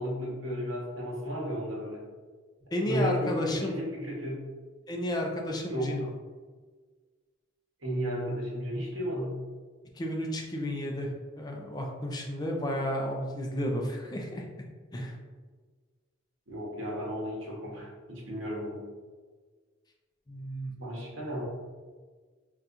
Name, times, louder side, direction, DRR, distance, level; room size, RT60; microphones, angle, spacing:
voice 1, 0.0-2.0 2.8-4.4 5.7-6.0 7.8-9.4 16.5-18.8 20.8-21.4, equal, 70° right, -4 dB, 1.1 m, -33 dB
voice 2, 2.7-3.8 4.9-6.1 10.0-11.1 11.4-14.4 14.9-15.1 20.3-20.7, equal, 20° left, 1 dB, 0.4 m, -32 dB
4.1 x 2.3 x 2.5 m, 1.4 s
head